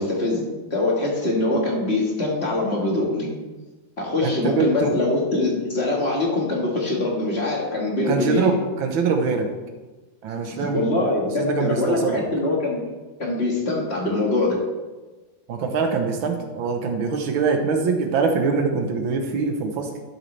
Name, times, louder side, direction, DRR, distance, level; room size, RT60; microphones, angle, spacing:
voice 1, 0.0-3.3 4.0-8.5 10.7-12.8 13.2-14.6, left 2 dB, 35° left, -2 dB, 1.8 m, -23 dB
voice 2, 4.2-4.9 8.1-9.5 10.2-12.2 15.5-19.9, right 4 dB, 90° right, 4 dB, 1.8 m, -23 dB
12.0 x 7.1 x 3.3 m, 1.2 s
omnidirectional pair, 2.1 m